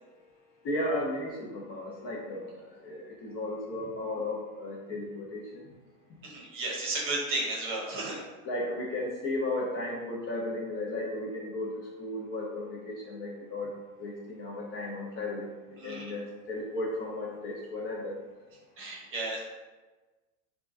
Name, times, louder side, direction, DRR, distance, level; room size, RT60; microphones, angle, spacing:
voice 1, 0.6-5.4 8.4-13.7 14.0-15.5 15.8-18.1, left 1 dB, 35° left, -3 dB, 0.6 m, -35 dB
voice 2, 6.2-8.2 15.8-16.1 18.8-19.4, right 2 dB, 30° right, -3 dB, 0.9 m, -33 dB
3.7 x 2.3 x 2.4 m, 1.2 s
supercardioid pair, 115°, 42 cm